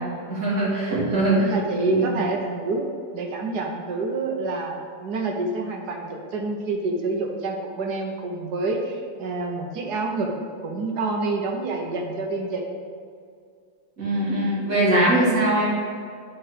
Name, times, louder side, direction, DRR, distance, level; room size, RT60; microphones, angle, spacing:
voice 1, 0.3-1.5 1.9-2.2 14.0-15.7, right 1 dB, 40° right, -7 dB, 2.5 m, -21 dB
voice 2, 1.4-10.3 10.6-12.6, right 3 dB, 60° right, 1 dB, 1.2 m, -27 dB
8.9 x 4.0 x 4.9 m, 2.2 s
omnidirectional pair, 2.3 m